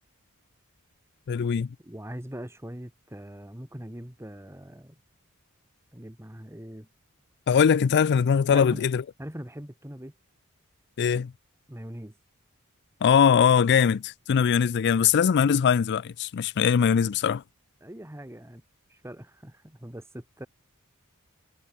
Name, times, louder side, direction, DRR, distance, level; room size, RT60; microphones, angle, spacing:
voice 1, 1.3-1.7 7.5-9.0 11.0-11.3 13.0-17.4, left 7 dB, 50° left, 0.4 m, -21 dB
voice 2, 1.8-5.0 5.9-6.9 8.5-8.8 9.2-10.1 11.7-12.1 17.8-18.6 18.9-20.5, equal, 10° right, 2.3 m, -41 dB
head